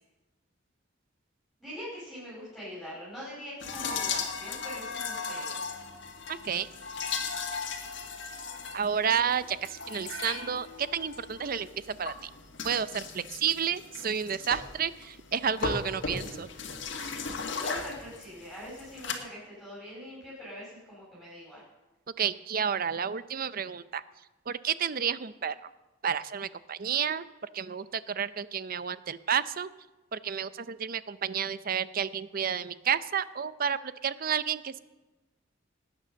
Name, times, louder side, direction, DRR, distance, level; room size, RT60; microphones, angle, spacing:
voice 1, 1.6-5.7 17.6-21.6, equal, ahead, -9 dB, 5.3 m, -43 dB
sound 1, 3.6-19.1, left 4 dB, 65° left, 1.8 m, -37 dB
voice 2, 6.3-6.7 8.7-12.3 12.6-16.5 22.2-24.0 24.5-25.5 26.0-27.2 27.5-29.7 30.1-34.8, right 7 dB, 50° right, 15 dB, 0.6 m, -31 dB
19.0 x 9.2 x 6.3 m, 1.1 s
head